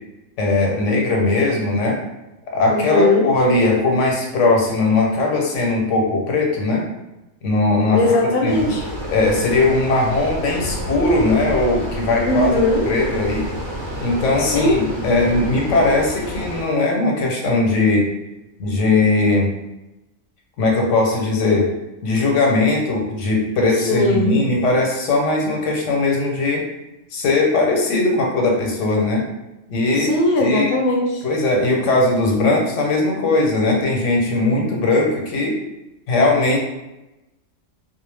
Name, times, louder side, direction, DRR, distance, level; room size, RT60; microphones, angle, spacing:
voice 1, 0.4-2.0 2.5-6.9 7.4-8.1 8.4-8.7 9.1-12.6 12.9-13.5 14.0-18.1 18.6-19.5 20.6-21.7 22.0-26.6 27.1-29.3 29.7-30.1 30.4-30.7 31.2-35.6 36.1-36.6, left 2 dB, 85° left, 0 dB, 1.0 m, -19 dB
voice 2, 2.7-3.3 7.9-8.8 12.2-12.9 14.4-14.9 23.8-24.3 29.9-31.2, left 2 dB, 55° left, -1 dB, 0.7 m, -19 dB
sound 1, 8.5-16.6, equal, 80° right, 1.0 m, -29 dB
2.4 x 2.1 x 3.2 m, 0.96 s
omnidirectional pair, 1.2 m